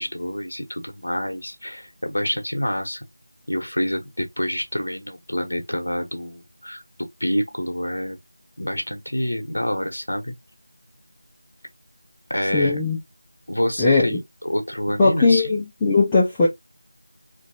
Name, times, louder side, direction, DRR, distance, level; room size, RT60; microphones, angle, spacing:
voice 1, 0.0-3.1 3.5-8.2 8.6-10.3 12.3-12.8 13.5-15.6, equal, 75° left, 0.9 m, -27 dB
voice 2, 12.5-13.0 13.8-14.2 15.0-16.5, left 3 dB, 10° left, 0.6 m, -18 dB
3.0 x 2.6 x 2.7 m
figure-of-eight pair, 170°, 0 cm